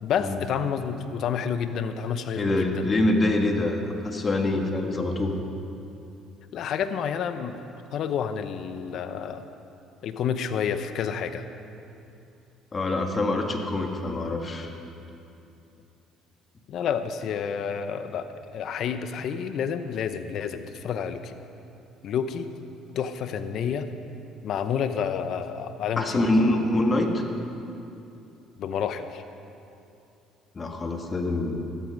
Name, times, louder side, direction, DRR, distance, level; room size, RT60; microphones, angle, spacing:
voice 1, 0.0-2.9 6.5-7.6 7.9-9.4 10.0-11.4 16.7-21.4 22.0-22.5 22.9-23.9 24.4-26.3 28.6-29.2, left 7 dB, 65° left, 10 dB, 0.8 m, -29 dB
voice 2, 2.4-5.4 12.7-14.7 26.0-27.2 30.5-31.6, left 2 dB, 35° left, 3 dB, 1.7 m, -25 dB
14.5 x 13.0 x 5.3 m, 2.7 s
supercardioid pair, 75°, 0 cm